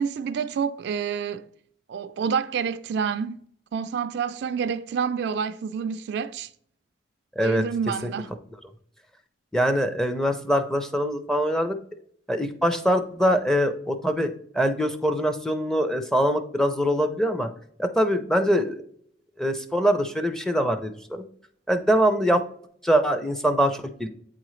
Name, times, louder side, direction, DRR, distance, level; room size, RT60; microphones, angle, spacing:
voice 1, 0.0-1.5 1.9-3.4 3.7-6.5 7.4-8.3, right 6 dB, 60° right, 0.3 m, -28 dB
voice 2, 9.5-11.8 12.3-17.5 17.8-18.8 19.4-21.2 21.7-22.4 22.8-24.1, equal, 5° left, 0.5 m, -23 dB
8.5 x 3.7 x 3.1 m
head